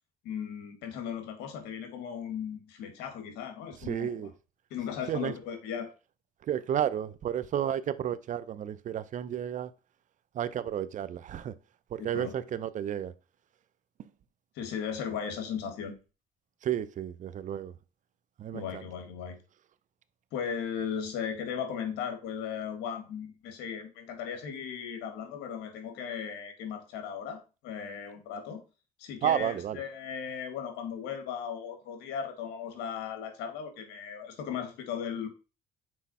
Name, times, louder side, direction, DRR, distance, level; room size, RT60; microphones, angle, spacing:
voice 1, 0.2-4.3 4.7-5.9 12.0-12.3 14.6-15.9 18.5-19.4 20.3-28.6 29.0-35.3, left 7 dB, 90° left, 1.9 m, -37 dB
voice 2, 3.9-4.3 5.1-5.3 6.5-9.7 10.3-11.5 11.9-13.1 16.6-17.7 18.4-18.8 29.2-29.8, right 10 dB, 50° right, 0.6 m, -32 dB
6.2 x 4.6 x 4.2 m
cardioid pair, 110°, 17 cm